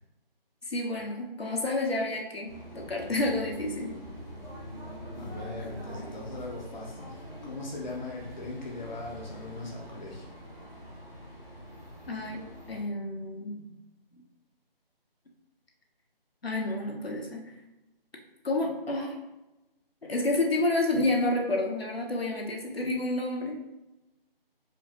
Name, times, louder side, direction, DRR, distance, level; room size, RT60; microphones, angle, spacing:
voice 1, 0.6-3.9 12.1-13.6 16.4-17.5 18.4-19.2 20.0-23.6, left 2 dB, 80° left, 0 dB, 1.0 m, -30 dB
sound 1, 2.5-12.8, equal, 20° right, 1.0 m, -44 dB
voice 2, 5.1-10.3, left 2 dB, 50° left, -2 dB, 0.8 m, -39 dB
4.7 x 2.6 x 2.9 m, 0.97 s
figure-of-eight pair, 160°, 30 cm